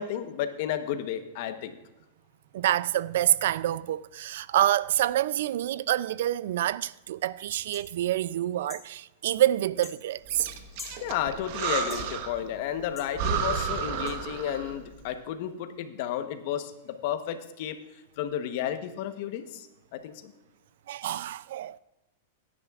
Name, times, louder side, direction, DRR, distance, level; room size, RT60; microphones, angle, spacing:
voice 1, 0.0-1.8 11.0-17.8 18.2-20.3, left 10 dB, 55° left, 1.0 m, -32 dB
voice 2, 2.5-10.5 20.9-21.8, right 12 dB, 70° right, 0.3 m, -27 dB
sound 1, 7.7-7.9 8.7-8.9 9.8-10.0 10.8-11.0 11.9-12.1 13.0-13.1 14.1-14.2, left 4 dB, 15° left, 1.3 m, -43 dB
Breathing, 10.3-12.5 12.8-12.9 13.1-14.8, right 7 dB, 50° right, 1.0 m, -32 dB
16.5 x 9.9 x 2.4 m
supercardioid pair, 150°, 0 cm